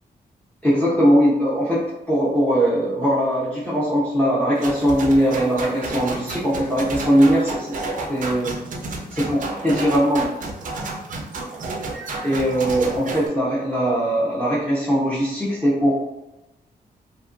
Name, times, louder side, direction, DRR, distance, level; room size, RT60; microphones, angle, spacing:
voice 1, 0.6-1.8 2.1-8.5 9.1-10.3 12.2-15.9, equal, 10° left, -8 dB, 0.4 m, -20 dB
sound 1, 4.6-13.3, right 3 dB, 50° right, 0.4 m, -31 dB
2.7 x 2.3 x 2.5 m, 0.98 s
wide cardioid pair, 170°, 17 cm